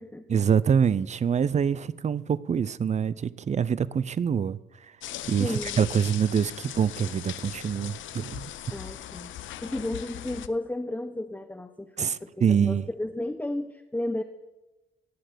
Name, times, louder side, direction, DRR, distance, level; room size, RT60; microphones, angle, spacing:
voice 1, 0.3-4.6 5.3-8.5 12.0-12.8, right 7 dB, 35° right, 0.6 m, -25 dB
sound 1, 5.0-10.5, left 12 dB, 75° left, 0.7 m, -39 dB
voice 2, 5.4-5.8 8.7-14.2, left 1 dB, 10° left, 0.9 m, -33 dB
17.0 x 6.5 x 7.9 m
cardioid pair, 90°, 20 cm